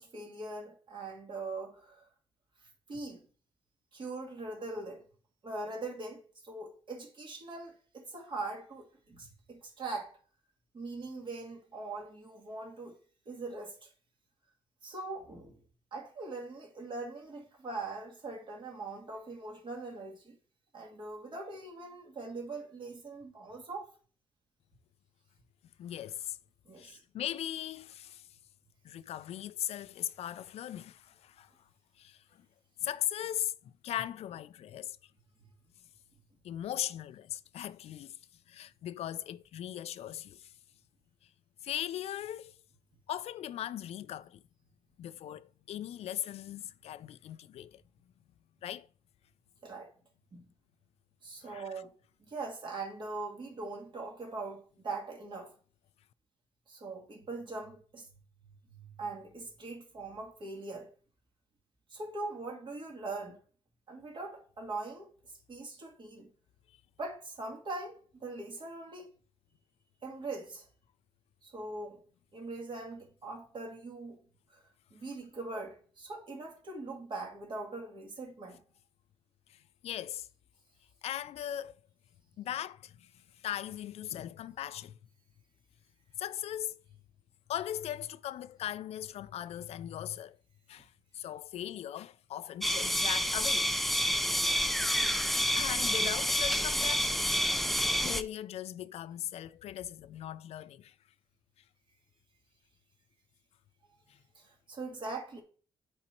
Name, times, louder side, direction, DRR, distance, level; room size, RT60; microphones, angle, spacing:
voice 1, 0.0-2.1 2.9-3.3 3.9-5.0 5.4-10.2 10.7-13.0 13.3-13.9 14.8-15.6 15.9-20.4 20.7-23.9 26.7-27.0 49.6-49.9 50.3-50.5 51.2-51.9 52.2-55.6 56.7-58.1 58.7-60.9 61.9-63.4 63.9-65.1 65.5-66.3 67.0-69.1 70.0-70.7 71.4-72.0 72.3-74.2 74.5-74.6 74.9-78.6 104.1-105.4, right 3 dB, 50° right, 2.4 m, -41 dB
voice 2, 25.8-26.4 26.8-28.3 28.8-31.5 32.0-32.5 32.8-35.0 36.4-38.2 38.5-40.5 41.6-42.6 43.1-44.4 45.0-47.8 48.6-48.9 51.5-51.8 79.5-80.3 81.0-81.7 82.4-85.0 86.2-86.8 87.5-90.4 90.7-93.7 94.0-94.2 95.6-97.8 98.0-100.9 104.1-104.2, left 11 dB, 80° left, 0.4 m, -39 dB
sound 1, 92.6-98.2, equal, ahead, 0.4 m, -29 dB
8.7 x 4.0 x 4.5 m
cardioid pair, 100°, 10 cm